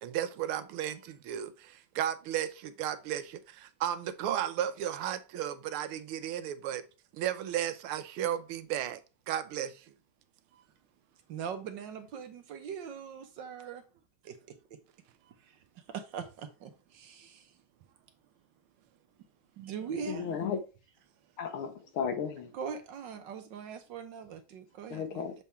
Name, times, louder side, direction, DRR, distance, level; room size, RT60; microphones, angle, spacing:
voice 1, 0.0-6.8 7.1-9.0 9.3-9.8, right 10 dB, 85° right, 1.6 m, -34 dB
voice 2, 11.3-13.8 14.2-14.6 15.4-15.6 15.9-17.5 19.6-20.4 22.5-25.3, right 7 dB, 65° right, 1.4 m, -41 dB
voice 3, 20.1-20.6 21.4-22.5 24.9-25.3, left 7 dB, 80° left, 1.9 m, -34 dB
7.0 x 3.6 x 4.2 m
omnidirectional pair, 2.3 m